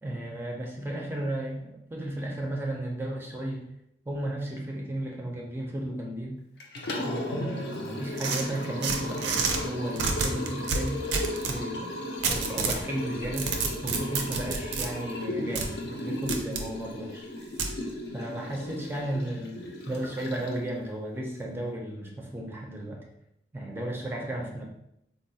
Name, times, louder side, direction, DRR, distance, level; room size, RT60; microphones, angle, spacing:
voice 1, 0.0-3.6 4.1-6.4 7.0-11.0 11.4-11.9 12.3-13.5 13.8-17.3 18.1-23.0 23.5-24.6, right 1 dB, 10° right, -1 dB, 0.4 m, -34 dB
Liquid, 6.6-20.7, left 1 dB, 70° left, 0.5 m, -35 dB
sound 1, 8.2-9.6 10.0-11.6 12.2-12.8 13.2-14.9 15.6-15.7 16.3-16.7 17.6-17.7, right 4 dB, 80° right, 0.4 m, -29 dB
3.8 x 2.2 x 2.7 m, 0.80 s
head